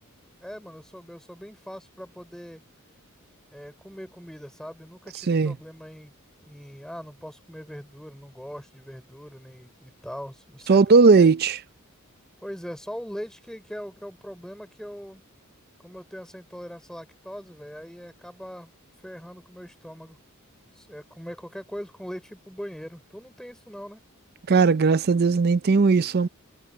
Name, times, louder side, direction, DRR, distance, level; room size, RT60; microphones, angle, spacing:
voice 1, 0.4-2.6 3.5-6.1 6.4-11.3 12.4-15.3 15.8-18.7 19.0-20.2 20.7-24.0, equal, 5° left, 4.6 m, -41 dB
voice 2, 10.7-11.5 24.5-26.3, right 4 dB, 45° right, 0.5 m, -17 dB
head